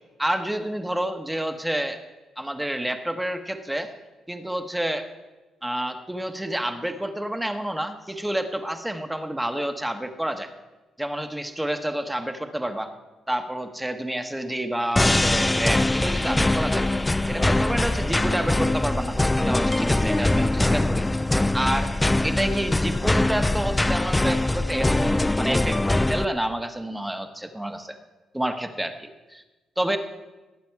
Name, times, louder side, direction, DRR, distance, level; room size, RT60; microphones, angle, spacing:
voice 1, 0.2-2.0 2.4-3.9 4.3-5.1 5.6-10.5 11.0-12.9 13.3-16.8 17.3-19.2 19.4-21.0 21.5-21.9 22.2-25.8 26.1-28.0 28.3-29.4 29.8-30.0, right 1 dB, 5° right, 7 dB, 1.2 m, -29 dB
sound 1, 15.0-26.2, left 2 dB, 10° left, 0.4 m, -22 dB
20.5 x 8.6 x 4.7 m, 1.1 s
cardioid pair, 90°, 0 cm